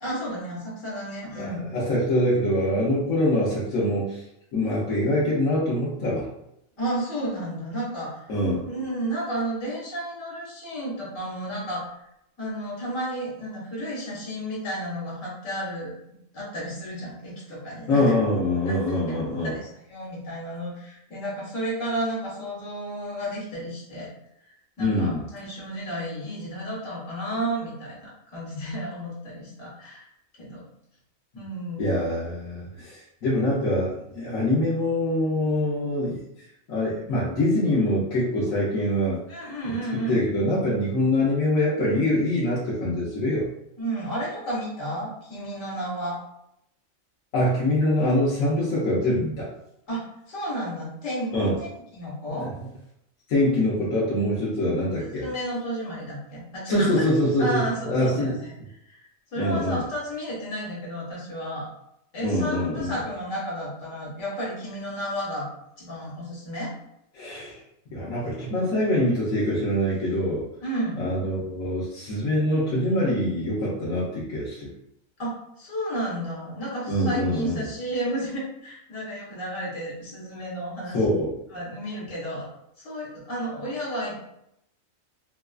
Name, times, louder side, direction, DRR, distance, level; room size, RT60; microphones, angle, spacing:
voice 1, 0.0-1.7 6.8-8.3 8.6-11.9 12.4-15.9 16.3-18.2 19.1-19.2 19.4-24.1 24.8-30.1 30.4-30.6 31.3-32.0 39.3-40.2 43.8-46.2 49.9-51.3 51.6-52.5 55.0-57.1 57.4-58.5 58.9-59.1 59.3-61.7 62.1-65.5 65.8-66.7 70.6-71.0 75.2-81.0 81.5-82.5 82.8-84.3, right 1 dB, 65° left, -6 dB, 1.7 m, -32 dB
voice 2, 1.4-4.2 4.5-6.3 8.3-8.6 17.9-19.5 24.8-25.2 31.8-36.2 36.7-39.2 39.6-39.7 40.1-43.5 47.3-49.5 51.3-51.5 52.4-52.5 53.3-55.2 56.7-58.4 59.4-59.8 62.2-62.9 67.1-67.6 67.9-70.4 71.0-74.7 76.9-77.7 80.9-81.4, left 1 dB, 85° left, -7 dB, 1.2 m, -24 dB
4.0 x 2.4 x 2.3 m, 0.79 s
omnidirectional pair, 1.4 m